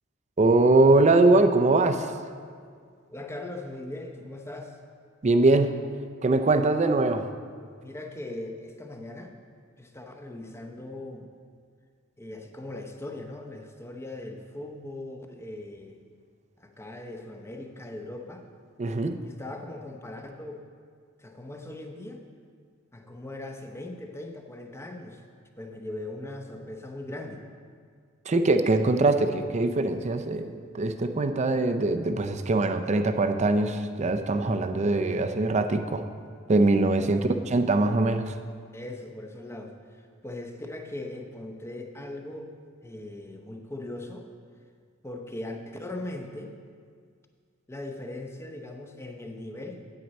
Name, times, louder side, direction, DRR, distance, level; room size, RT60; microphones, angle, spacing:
voice 1, 0.4-2.1 5.2-5.8 6.2-7.3 18.8-19.2 28.3-36.0 36.5-37.2 37.5-38.3, right 2 dB, 35° right, 8 dB, 0.5 m, -22 dB
voice 2, 3.1-4.8 7.8-9.3 9.8-11.3 12.2-16.0 16.6-18.5 19.2-20.6 21.2-22.2 22.9-25.2 25.6-27.5 37.0-37.1 38.7-42.5 42.8-44.3 45.0-46.5 47.7-49.8, left 1 dB, 15° left, 3 dB, 0.7 m, -39 dB
9.4 x 9.0 x 4.1 m, 2.1 s
head